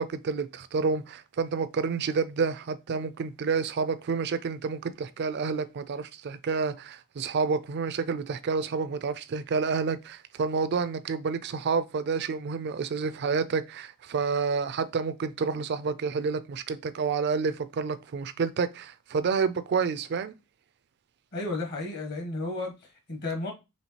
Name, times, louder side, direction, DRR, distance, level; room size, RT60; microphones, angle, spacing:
voice 1, 0.0-20.3, right 5 dB, 50° right, 0.3 m, -29 dB
voice 2, 21.3-23.5, left 2 dB, 45° left, 0.9 m, -33 dB
4.3 x 3.1 x 2.9 m
head